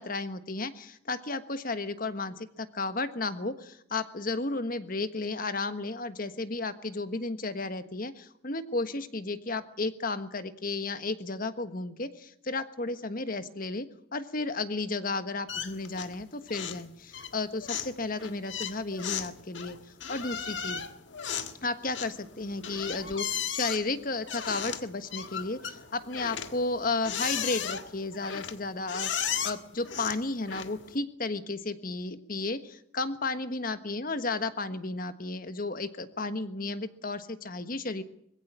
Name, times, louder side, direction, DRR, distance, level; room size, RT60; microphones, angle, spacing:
voice 1, 0.0-13.9 14.1-19.8 20.1-20.8 21.6-38.0, left 3 dB, 45° left, 11 dB, 1.4 m, -33 dB
sound 1, 15.5-16.2 16.5-16.9 17.1-30.9, left 8 dB, 65° left, 1.7 m, -36 dB
21.5 x 16.0 x 9.9 m, 0.70 s
head